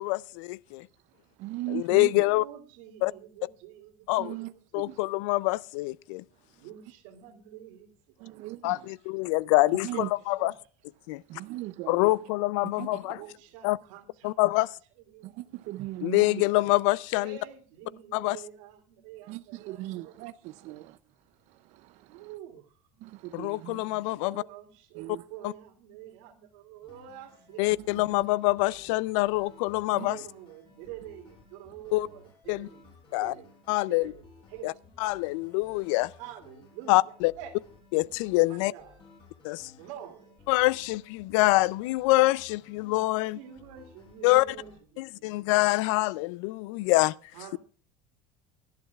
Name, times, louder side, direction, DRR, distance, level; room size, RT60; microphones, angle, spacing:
voice 1, 0.0-0.9 1.7-2.4 3.0-3.1 4.1-4.3 4.7-6.2 8.6-9.9 10.3-10.5 11.1-11.2 11.9-13.2 13.6-13.8 14.2-14.7 16.0-17.4 18.1-18.4 23.3-24.4 25.4-25.5 27.6-30.2 31.9-32.1 32.5-32.7 33.1-33.3 33.7-34.1 34.6-34.7 35.0-36.1 36.9-37.3 37.9-38.7 39.4-39.7 40.5-43.4 44.2-44.4 45.0-47.1, left 21 dB, 80° left, 0.5 m, -25 dB
voice 2, 0.7-2.3 4.2-5.1 6.3-6.6 8.2-9.0 9.7-10.1 11.0-12.3 12.6-13.3 15.2-16.4 19.3-22.3 23.0-23.9 24.9-25.2 27.7-28.3 29.9-30.1 35.2-35.4, right 17 dB, 50° right, 0.5 m, -40 dB
voice 3, 2.2-4.5 4.8-5.0 6.5-8.4 10.0-10.5 13.0-14.7 15.0-15.4 17.1-20.1 20.7-20.8 22.1-22.8 24.2-28.2 29.9-33.5 33.9-34.7 36.2-37.6 38.4-38.9 39.8-40.4 43.2-45.5 47.3-47.6, right 11 dB, 85° right, 2.6 m, -47 dB
sound 1, 26.8-44.8, left 4 dB, 30° left, 5.9 m, -56 dB
24.5 x 11.5 x 2.4 m
cardioid pair, 165°, 16 cm